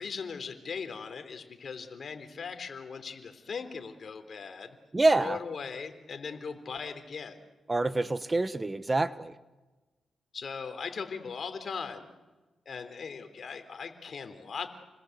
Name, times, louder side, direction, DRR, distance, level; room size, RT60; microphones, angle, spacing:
voice 1, 0.0-4.8 5.1-7.4 10.3-12.1 12.7-14.7, left 5 dB, 60° left, 7 dB, 3.8 m, -39 dB
voice 2, 4.9-5.4 7.7-9.3, right 2 dB, 25° right, 13 dB, 1.2 m, -26 dB
30.0 x 20.5 x 8.3 m, 1.2 s
cardioid pair, 70°, 0 cm